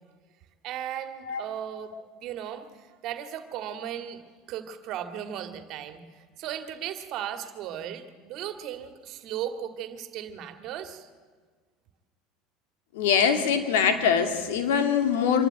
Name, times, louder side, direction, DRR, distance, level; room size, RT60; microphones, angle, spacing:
voice 1, 0.6-1.9 2.2-11.1, right 10 dB, 55° right, 9 dB, 2.1 m, -36 dB
voice 2, 12.9-15.5, left 7 dB, 80° left, 7 dB, 2.4 m, -23 dB
26.0 x 12.5 x 9.1 m, 1.5 s
supercardioid pair, 95°, 0 cm